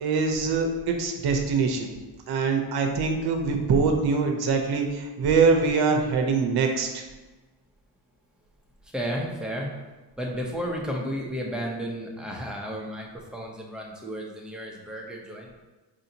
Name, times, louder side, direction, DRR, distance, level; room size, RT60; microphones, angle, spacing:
voice 1, 0.0-1.9 2.3-7.0, right 4 dB, 65° right, 4 dB, 0.7 m, -23 dB
voice 2, 8.9-9.7 10.2-15.5, equal, ahead, -1 dB, 0.6 m, -33 dB
5.0 x 2.7 x 2.7 m, 1.2 s
cardioid pair, 115°, 41 cm